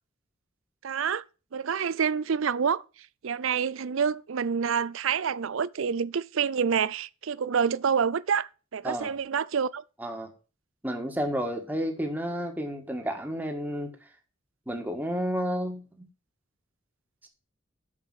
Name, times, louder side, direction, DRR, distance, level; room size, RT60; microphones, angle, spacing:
voice 1, 0.8-1.2 1.5-2.8 3.2-9.8, right 6 dB, 70° right, 0.5 m, -27 dB
voice 2, 8.8-9.2 10.0-10.3 10.8-13.9 14.7-16.1, equal, 10° right, 1.5 m, -31 dB
7.5 x 6.6 x 7.7 m
head